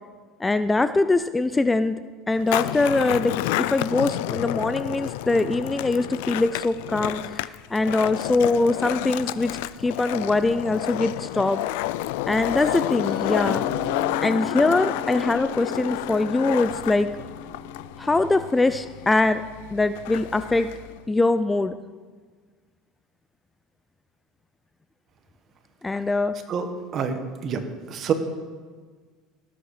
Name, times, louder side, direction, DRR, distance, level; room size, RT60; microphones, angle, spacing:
voice 1, 0.4-2.0 2.3-11.6 12.3-13.7 14.2-17.1 18.0-19.4 19.7-20.7 21.1-21.7 25.8-26.4, left 2 dB, 15° left, 12 dB, 0.4 m, -23 dB
Skateboard, 2.4-21.0, left 16 dB, 85° left, 0.4 m, -30 dB
Musical instrument, 13.0-19.4, right 1 dB, 70° right, 2.1 m, -39 dB
voice 2, 26.9-27.6 27.9-28.1, right 7 dB, 45° right, 7 dB, 1.6 m, -26 dB
18.5 x 8.1 x 5.0 m, 1.5 s
supercardioid pair, 120°, 0 cm